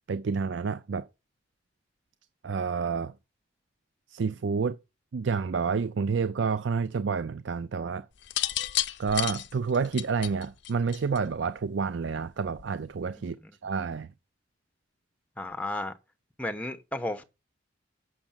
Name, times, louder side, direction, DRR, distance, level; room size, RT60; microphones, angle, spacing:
voice 1, 0.1-1.1 2.4-3.1 4.1-4.8 5.1-8.1 9.0-13.4 13.6-14.1, right 5 dB, 70° right, 0.5 m, -29 dB
sound 1, 8.2-11.4 12.5-12.8, left 13 dB, 60° left, 0.6 m, -31 dB
voice 2, 15.4-15.9 16.4-17.2, left 1 dB, 5° left, 1.1 m, -33 dB
7.1 x 6.4 x 7.4 m
head